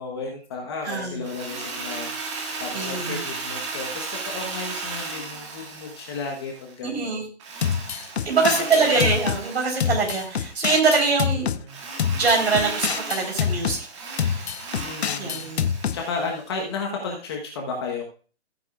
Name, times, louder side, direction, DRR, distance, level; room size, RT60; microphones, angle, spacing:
voice 1, 0.0-7.2 8.4-9.1 11.5-11.8 14.4-15.5 15.9-18.0, left 4 dB, 20° left, 0 dB, 1.2 m, -33 dB
voice 2, 0.8-1.2 2.7-3.2 6.8-7.3 7.9-11.5 12.1-14.5 15.2-15.7, right 4 dB, 60° right, 1 dB, 4.3 m, -24 dB
Drill, 1.2-6.7 7.4-10.7 11.7-16.5, right 4 dB, 25° right, 1.8 m, -35 dB
sound 1, 7.6-9.4 9.8-11.6 12.0-13.8 14.2-16.0, left 8 dB, 65° left, 0.7 m, -26 dB
15.0 x 9.1 x 2.5 m, 0.38 s
hypercardioid pair, 165°, 35 cm